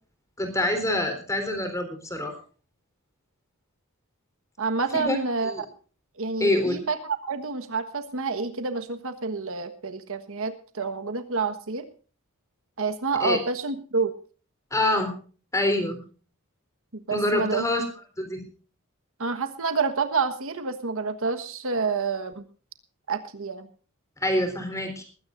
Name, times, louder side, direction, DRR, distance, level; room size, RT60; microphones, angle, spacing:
voice 1, 0.4-2.3 4.9-5.2 5.4-5.6 6.4-6.8 13.2-13.4 14.7-15.1 15.5-16.0 17.1-17.8 18.2-18.4 24.2-25.0, left 1 dB, 15° left, 7 dB, 3.8 m, -25 dB
voice 2, 4.6-5.7 6.2-11.9 12.8-14.1 17.1-17.6 19.2-22.4 23.1-23.7, right 4 dB, 65° right, 8 dB, 1.4 m, -28 dB
20.5 x 16.0 x 2.6 m, 0.39 s
head